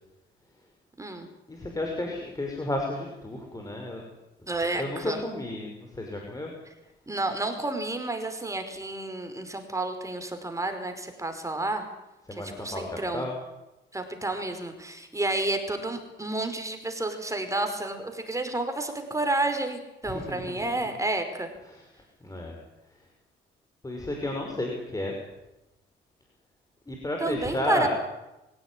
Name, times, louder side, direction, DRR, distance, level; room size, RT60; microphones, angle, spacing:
voice 1, 1.5-4.0 4.7-6.5 12.3-13.3 20.0-20.6 21.7-21.8 22.2-22.5 23.8-25.1 26.9-27.9, left 1 dB, 15° left, 1 dB, 5.7 m, -32 dB
voice 2, 4.5-5.2 7.1-11.8 12.6-13.3 13.9-21.5 27.2-27.9, right 2 dB, 15° right, 6 dB, 5.0 m, -30 dB
24.5 x 17.0 x 10.0 m, 0.96 s
cardioid pair, 90°, 20 cm